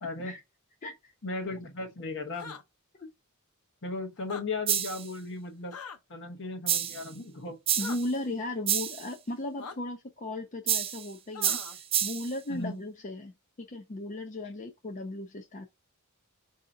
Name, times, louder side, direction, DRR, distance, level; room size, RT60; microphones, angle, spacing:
voice 1, 0.0-0.3 1.2-2.6 3.8-5.8 6.1-7.6 12.5-12.8, left 3 dB, 60° left, 1.0 m, -36 dB
voice 2, 0.8-1.1 3.0-3.1 7.8-13.3 13.6-15.7, left 2 dB, 35° left, 0.5 m, -36 dB
sound 1, 2.3-2.6 4.2-4.4 5.7-6.0 7.8-8.0 9.6-9.8 11.3-11.8, left 5 dB, 85° left, 0.8 m, -41 dB
sound 2, 4.7-5.1 6.7-7.1 7.7-8.1 8.7-9.1 10.7-11.1 11.4-12.3, right 10 dB, 25° right, 0.3 m, -29 dB
4.6 x 2.8 x 3.7 m
head